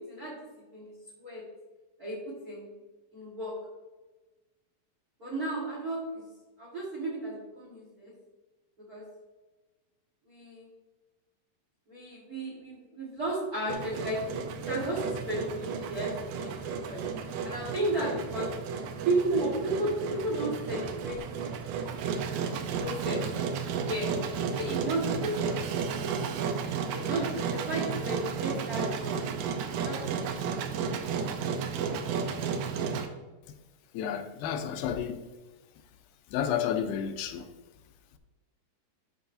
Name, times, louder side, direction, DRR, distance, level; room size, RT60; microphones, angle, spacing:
voice 1, 0.7-1.4 2.0-2.7 3.1-3.5 5.2-6.3 6.6-8.1 8.9-9.0 10.3-10.7 11.9-14.2 14.7-17.1 17.4-18.5 19.0-21.2 22.6-23.2 23.8-24.1 24.5-25.6 26.9-29.2 29.7-31.2, right 1 dB, 60° right, -4 dB, 0.9 m, -33 dB
Engine, 13.7-33.1, right 6 dB, 75° right, 2.2 m, -33 dB
voice 2, 33.9-35.2 36.3-37.5, left 8 dB, 90° left, 8 dB, 2.5 m, -31 dB
12.0 x 4.7 x 2.6 m, 1.2 s
omnidirectional pair, 4.1 m